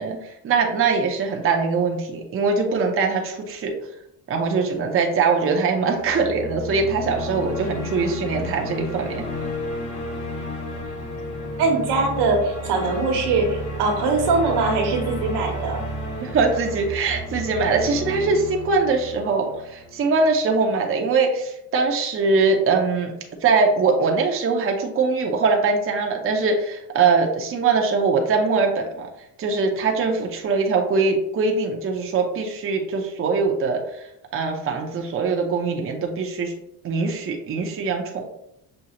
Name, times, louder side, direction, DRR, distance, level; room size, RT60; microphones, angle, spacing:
voice 1, 0.0-3.8 4.3-9.3 16.2-23.1 23.4-29.1 29.4-36.5 36.8-38.3, right 4 dB, 35° right, 2 dB, 0.7 m, -22 dB
sound 1, 6.0-20.2, equal, 50° left, 1.6 m, -32 dB
voice 2, 11.6-15.8, right 3 dB, 85° right, 2 dB, 1.2 m, -22 dB
6.3 x 2.3 x 2.8 m, 0.79 s
cardioid pair, 100°, 39 cm